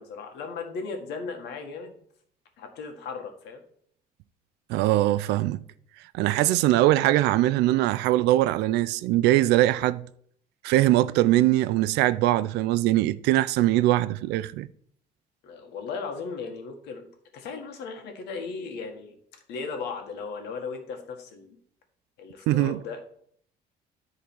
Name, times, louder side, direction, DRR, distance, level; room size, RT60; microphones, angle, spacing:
voice 1, 0.0-2.0 2.6-3.6 15.4-19.2 19.5-21.6 22.2-23.0, left 4 dB, 85° left, 1.7 m, -36 dB
voice 2, 4.7-5.6 6.1-10.0 10.6-14.7 22.5-22.8, right 15 dB, 90° right, 0.5 m, -22 dB
10.5 x 3.8 x 6.1 m
cardioid pair, 110°, 17 cm